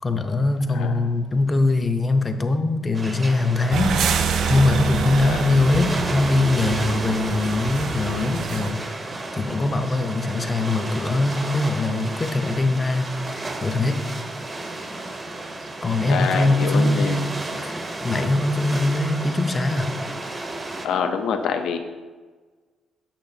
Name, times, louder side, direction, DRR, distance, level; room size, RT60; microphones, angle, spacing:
voice 1, 0.0-4.0 4.5-14.1 15.8-17.1 17.6-19.9, left 2 dB, 25° left, 7 dB, 0.5 m, -22 dB
sound 1, 2.9-20.9, right 2 dB, 25° right, 0.7 m, -32 dB
sound 2, 3.7-8.7, right 6 dB, 70° right, 0.4 m, -26 dB
voice 2, 16.1-17.2 20.8-21.8, left 6 dB, 75° left, 6 dB, 0.5 m, -25 dB
8.8 x 6.5 x 2.7 m, 1.4 s
cardioid pair, 120°, 0 cm